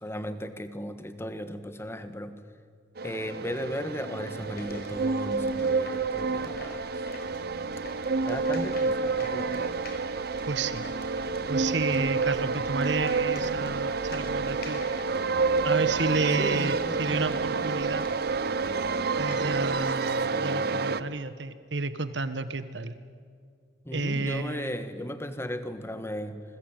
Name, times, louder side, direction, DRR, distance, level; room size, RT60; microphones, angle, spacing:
voice 1, 0.0-2.4 3.0-7.1 8.2-9.8 16.4-17.3 23.8-26.4, equal, 15° left, 10 dB, 1.5 m, -36 dB
sound 1, 3.0-21.0, right 4 dB, 60° right, 0.8 m, -29 dB
sound 2, 4.4-20.0, left 1 dB, 60° left, 4.7 m, -46 dB
voice 2, 10.5-10.9 11.5-14.8 15.6-18.1 19.2-22.9 23.9-24.7, right 3 dB, 75° right, 11 dB, 1.4 m, -31 dB
28.5 x 21.0 x 9.2 m, 2.1 s
head